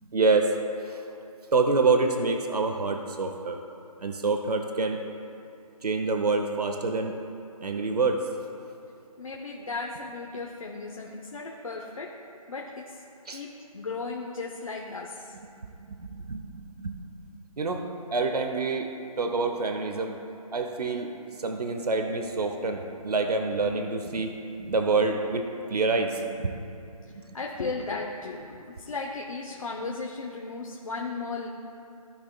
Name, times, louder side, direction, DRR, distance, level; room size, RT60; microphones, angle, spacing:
voice 1, 0.1-0.5 0.8-1.0 1.5-3.6 4.0-5.0 5.8-7.2 7.6-8.3 13.2-13.4 15.6-17.0 17.3-20.2 20.5-26.6 27.1-27.4, right 3 dB, 80° right, 4 dB, 0.9 m, -27 dB
voice 2, 9.2-12.1 12.5-15.3 27.3-31.5, left 3 dB, 60° left, -1 dB, 1.0 m, -36 dB
15.5 x 6.1 x 2.4 m, 2.6 s
hypercardioid pair, 175°, 20 cm